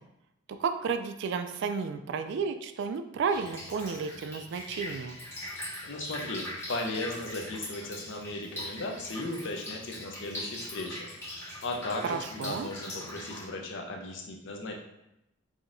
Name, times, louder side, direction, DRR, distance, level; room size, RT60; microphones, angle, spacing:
voice 1, 0.6-5.2 12.0-12.7, right 5 dB, 65° right, 9 dB, 0.3 m, -32 dB
Drip, 3.3-13.5, left 1 dB, 15° left, 1.5 m, -41 dB
voice 2, 5.8-14.7, left 2 dB, 65° left, 2 dB, 0.6 m, -37 dB
4.8 x 2.7 x 2.6 m, 0.87 s
head